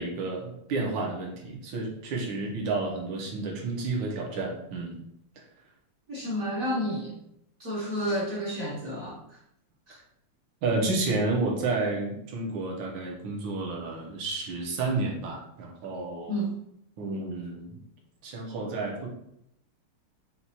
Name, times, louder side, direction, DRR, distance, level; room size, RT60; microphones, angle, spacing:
voice 1, 0.0-5.0 10.6-16.3 17.0-17.8 18.2-19.1, right 3 dB, 65° right, -1 dB, 1.5 m, -31 dB
voice 2, 6.1-7.1 7.6-9.4 9.9-10.0 16.3-16.5, equal, 50° right, -6 dB, 1.1 m, -31 dB
5.9 x 2.4 x 2.8 m, 0.77 s
omnidirectional pair, 2.4 m